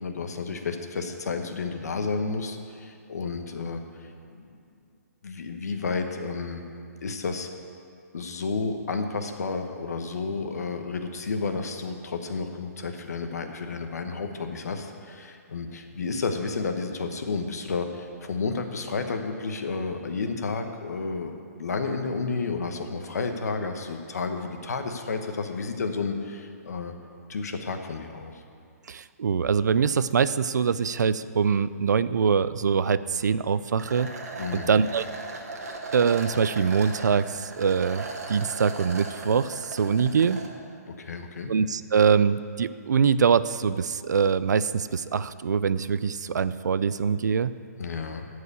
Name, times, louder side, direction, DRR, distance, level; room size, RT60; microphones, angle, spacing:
voice 1, 0.0-3.8 4.5-4.6 5.2-6.6 7.0-7.5 8.1-26.9 27.3-28.4 34.4-34.7 41.0-41.5 47.8-48.2, left 4 dB, 65° left, 5 dB, 1.1 m, -31 dB
voice 2, 28.9-34.1 34.5-35.0 35.9-40.4 41.5-47.5, right 6 dB, 90° right, 15 dB, 0.5 m, -23 dB
sound 1, 33.8-40.5, right 3 dB, 60° right, 1.6 m, -38 dB
13.5 x 4.9 x 8.3 m, 2.4 s
hypercardioid pair, 175°, 9 cm